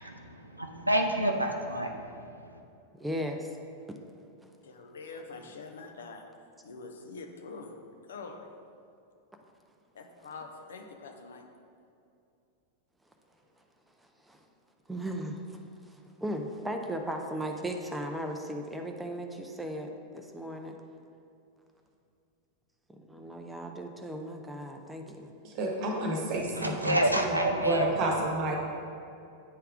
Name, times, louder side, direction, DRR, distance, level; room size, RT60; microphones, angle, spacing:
voice 1, 0.0-2.6 26.3-28.4, right 1 dB, 85° right, 3 dB, 0.4 m, -29 dB
voice 2, 3.0-3.5 4.4-4.5 5.4-5.5 14.3-14.4 14.9-15.6 15.8-19.9 20.1-20.8 22.9-25.3, right 1 dB, 5° right, 3 dB, 0.5 m, -37 dB
voice 3, 4.6-6.2 6.6-7.7 8.1-8.4 9.9-11.4, left 4 dB, 65° left, 4 dB, 0.6 m, -44 dB
voice 4, 25.4-26.9 27.6-28.6, right 2 dB, 40° right, 0 dB, 1.0 m, -30 dB
8.7 x 3.3 x 3.6 m, 2.5 s
figure-of-eight pair, 90°, 0 cm